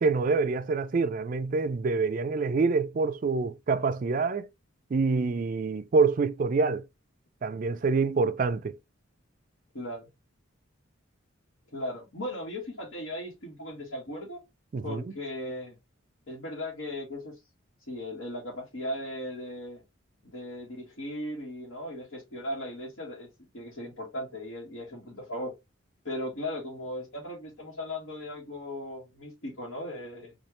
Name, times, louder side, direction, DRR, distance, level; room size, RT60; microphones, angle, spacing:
voice 1, 0.0-4.5 4.9-6.9 7.4-8.8 14.7-15.1, right 4 dB, 40° right, 0.3 m, -26 dB
voice 2, 9.7-10.1 11.7-14.4 14.8-15.8 16.3-17.4 17.9-19.8 20.2-23.3 23.5-25.5 26.0-30.3, left 1 dB, 80° left, 1.4 m, -37 dB
4.2 x 2.4 x 3.1 m
head